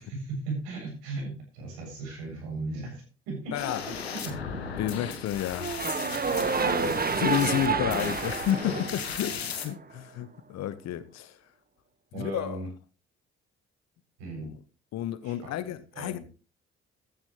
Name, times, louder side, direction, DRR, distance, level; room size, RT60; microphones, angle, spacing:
voice 1, 0.0-4.3 6.8-7.2 12.1-12.7 14.2-14.5 15.2-16.2, right 3 dB, 75° right, 7.6 m, -37 dB
sound 1, 3.5-9.7, left 6 dB, 85° left, 1.6 m, -36 dB
voice 2, 3.5-3.9 4.8-5.9 6.6-6.9 7.2-11.4 12.1-12.6 14.4-14.5 14.9-16.2, left 11 dB, 60° left, 1.1 m, -31 dB
sound 2, 5.6-9.8, right 5 dB, 30° right, 1.5 m, -29 dB
15.0 x 13.0 x 3.2 m
figure-of-eight pair, 45°, 31 cm